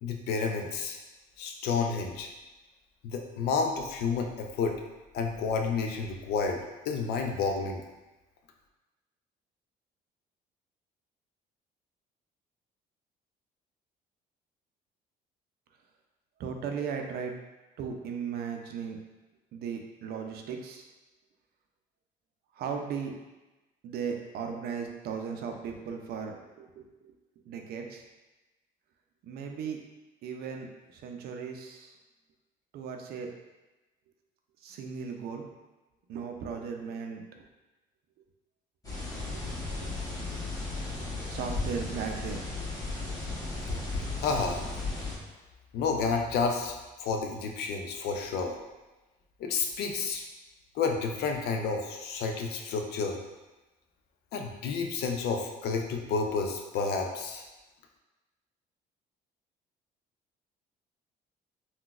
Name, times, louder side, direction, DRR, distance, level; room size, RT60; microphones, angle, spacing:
voice 1, 0.0-1.0 1.4-2.3 3.0-4.8 5.1-7.8 44.2-44.6 45.7-48.6 49.4-50.2 50.7-53.2 54.3-57.4, left 5 dB, 75° left, 3 dB, 0.5 m, -30 dB
voice 2, 16.4-17.3 17.8-19.0 19.5-20.9 22.6-23.1 23.8-26.8 27.5-28.0 29.2-29.8 30.2-30.7 30.9-31.9 32.7-33.3 34.6-35.5 36.1-37.2 39.3-39.4 39.8-39.9 41.3-42.5, right 6 dB, 70° right, 3 dB, 0.5 m, -36 dB
sound 1, 38.8-45.2, left 3 dB, 20° left, 1.0 m, -35 dB
3.9 x 2.2 x 2.3 m, 1.1 s
cardioid pair, 110°, 17 cm